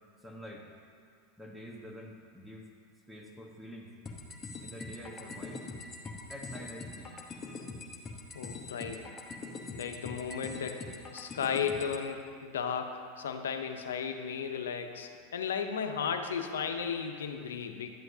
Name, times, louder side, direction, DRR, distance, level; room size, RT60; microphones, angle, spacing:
voice 1, 0.2-0.7 1.4-2.7 3.1-3.9 4.6-5.7 6.3-7.1, equal, 5° right, 0 dB, 1.2 m, -46 dB
sound 1, 4.1-12.0, left 3 dB, 25° left, 1.0 m, -43 dB
voice 2, 8.3-9.0 9.7-17.9, left 7 dB, 80° left, 6 dB, 0.6 m, -35 dB
11.0 x 7.8 x 2.8 m, 2.2 s
hypercardioid pair, 95°, 0 cm